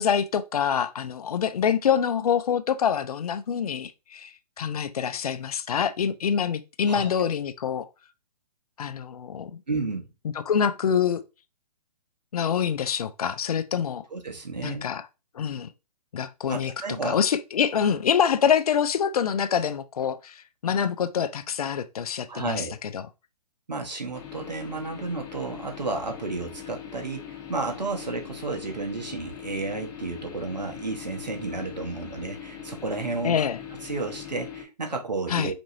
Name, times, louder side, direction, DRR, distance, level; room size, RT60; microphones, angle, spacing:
voice 1, 0.0-7.9 8.8-9.6 10.5-11.2 12.3-14.0 14.6-15.1 15.3-15.7 16.1-16.7 17.0-23.1 33.2-33.6 35.3-35.5, left 8 dB, 65° left, 0.6 m, -26 dB
voice 2, 9.7-10.1 14.1-14.9 16.5-17.2 22.3-22.8 23.7-33.4 33.8-35.5, right 3 dB, 90° right, 1.2 m, -32 dB
sound 1, 24.1-34.6, left 9 dB, 15° left, 1.1 m, -41 dB
5.1 x 3.0 x 2.6 m
figure-of-eight pair, 135°, 21 cm